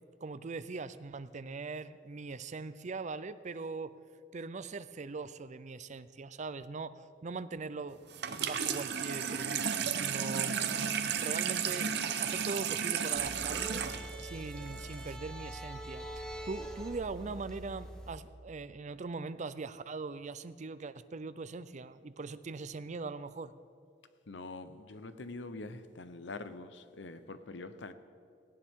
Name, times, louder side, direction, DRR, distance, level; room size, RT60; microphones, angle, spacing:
voice 1, 0.2-4.0 4.3-8.0 8.4-11.9 12.2-13.8 14.2-23.5, right 4 dB, 40° right, 14 dB, 0.5 m, -41 dB
Water tap faucet / Sink (filling or washing), 8.1-15.1, right 7 dB, 65° right, 0.8 m, -33 dB
sound 1, 13.2-18.2, right 1 dB, 5° left, 1.2 m, -44 dB
voice 2, 24.3-27.9, left 3 dB, 75° left, 11 dB, 0.9 m, -44 dB
17.5 x 17.0 x 3.7 m, 2.3 s
head